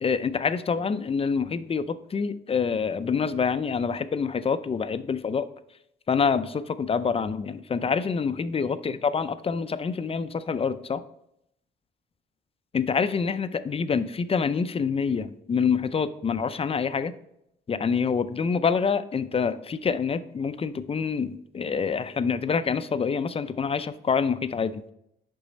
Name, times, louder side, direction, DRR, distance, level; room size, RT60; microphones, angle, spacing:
voice 1, 0.0-5.5 6.1-11.0 12.7-17.1 17.7-24.8, left 6 dB, 30° left, 12 dB, 0.5 m, -26 dB
7.1 x 5.4 x 4.0 m, 0.77 s
cardioid pair, 90°, 20 cm